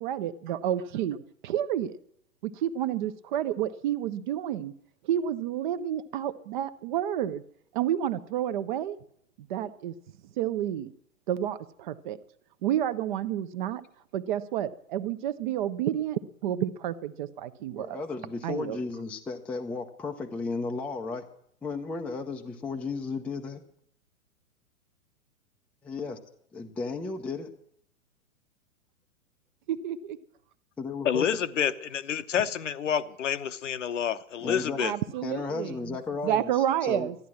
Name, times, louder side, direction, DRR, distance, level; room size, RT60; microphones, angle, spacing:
voice 1, 0.0-2.0 2.4-4.7 5.0-7.4 7.7-9.0 9.5-9.9 10.4-10.9 11.3-12.2 12.6-13.8 14.1-18.0 18.4-18.8 29.7-30.2 34.8-36.0 36.2-37.2, right 11 dB, 35° right, 0.7 m, -30 dB
voice 2, 17.8-21.3 21.6-23.6 25.8-26.2 26.5-27.5 30.8-31.3 34.4-34.8 35.2-36.5 36.8-37.1, left 4 dB, 5° left, 0.5 m, -34 dB
voice 3, 31.0-34.9, left 8 dB, 60° left, 0.9 m, -28 dB
13.0 x 10.0 x 7.4 m
figure-of-eight pair, 110°, 41 cm